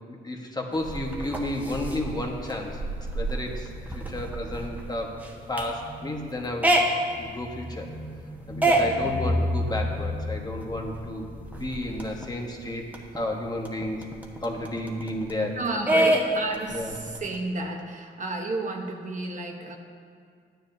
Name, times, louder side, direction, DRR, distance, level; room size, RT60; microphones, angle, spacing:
voice 1, 0.2-2.8 3.1-3.7 3.9-5.1 5.5-6.7 7.2-7.9 8.5-12.9 13.1-14.0 14.4-15.6 15.9-16.1 16.7-16.9, left 1 dB, 20° left, 1 dB, 1.3 m, -32 dB
sound 1, 0.7-12.2 12.6-12.7 12.9-15.4 15.9-17.3, right 1 dB, 10° right, 1.2 m, -28 dB
voice 2, 15.6-19.8, right 2 dB, 40° right, 2 dB, 1.1 m, -32 dB
13.0 x 9.8 x 2.7 m, 2.1 s
cardioid pair, 90°, 20 cm